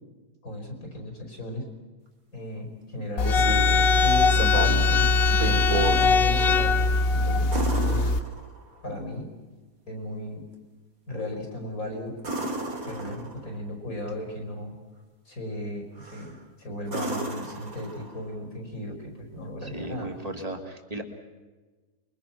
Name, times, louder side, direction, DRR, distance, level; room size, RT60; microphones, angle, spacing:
voice 1, 0.4-1.7 2.3-5.1 5.4-6.8 7.1-8.1 8.8-9.3 9.9-10.5 11.1-12.1 12.9-14.8 15.3-20.1, left 1 dB, 60° left, 4 dB, 5.5 m, -35 dB
sound 1, 3.0-3.8 4.3-4.9 5.3-6.0 7.5-8.8 12.2-13.5 16.0-16.4 16.9-18.3 20.4-20.5, right 2 dB, 65° right, 3.1 m, -32 dB
sound 2, 3.2-8.2, left 3 dB, 45° left, 1.0 m, -21 dB
voice 2, 13.0-13.3 19.6-21.0, right 1 dB, 25° right, 4 dB, 2.9 m, -36 dB
28.5 x 23.0 x 6.1 m, 1.3 s
omnidirectional pair, 1.7 m